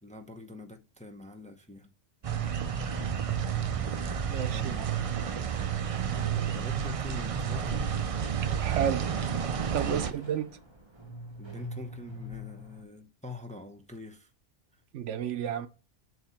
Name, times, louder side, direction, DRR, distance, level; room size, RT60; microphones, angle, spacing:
voice 1, 0.0-1.9 4.4-5.5 6.5-8.0 9.9-10.1 11.4-14.3 14.7-14.8, left 3 dB, 10° left, 0.6 m, -45 dB
sound 1, 2.2-10.1, right 8 dB, 50° right, 0.4 m, -31 dB
sound 2, 2.9-12.8, left 1 dB, 25° right, 1.0 m, -46 dB
voice 2, 4.3-4.7 8.6-9.1 9.7-10.5 14.9-15.7, right 9 dB, 85° right, 1.0 m, -31 dB
7.8 x 2.8 x 5.6 m
omnidirectional pair, 1.2 m